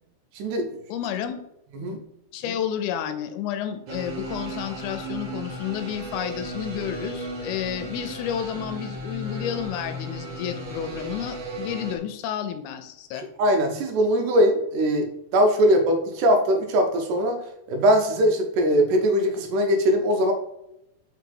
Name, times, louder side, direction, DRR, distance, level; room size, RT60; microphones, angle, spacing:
voice 1, 0.4-0.7 1.8-2.0 13.2-17.4 17.7-20.3, equal, 80° right, 5 dB, 2.4 m, -21 dB
voice 2, 0.9-1.3 1.8-2.0 2.3-13.3, left 9 dB, 80° left, 9 dB, 2.0 m, -31 dB
sound 1, 3.9-12.0, right 1 dB, 60° right, 1.3 m, -35 dB
5.2 x 4.0 x 4.7 m, 0.83 s
omnidirectional pair, 3.6 m